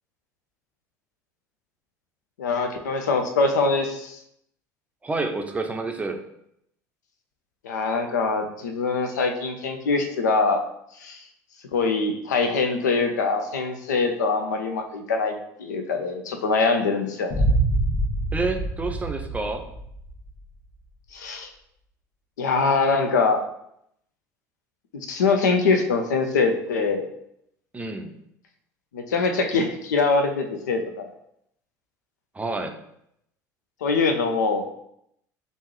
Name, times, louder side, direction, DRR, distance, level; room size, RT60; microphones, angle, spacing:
voice 1, 2.4-4.2 7.6-10.7 11.0-11.2 11.7-17.4 21.1-21.5 22.4-23.4 24.9-27.1 28.9-30.8 33.8-34.7, left 4 dB, 75° left, 5 dB, 0.5 m, -23 dB
voice 2, 5.0-6.2 18.3-19.6 27.7-28.1 32.3-32.8, right 3 dB, 15° right, 5 dB, 0.5 m, -28 dB
Boom, 17.3-20.3, right 2 dB, 35° left, 1.0 m, -25 dB
3.5 x 2.6 x 3.1 m, 0.75 s
figure-of-eight pair, 65°, 9 cm